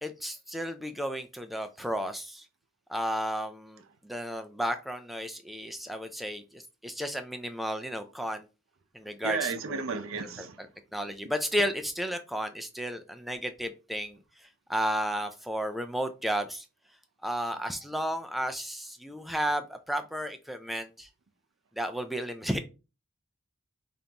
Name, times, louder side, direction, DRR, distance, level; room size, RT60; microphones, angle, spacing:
voice 1, 0.0-2.5 2.9-8.5 8.9-9.8 10.4-10.7 10.9-16.7 17.2-21.1 21.8-22.6, equal, ahead, 0.3 m, -33 dB
voice 2, 9.2-10.6, right 5 dB, 85° right, 0.6 m, -33 dB
5.2 x 2.6 x 2.8 m
head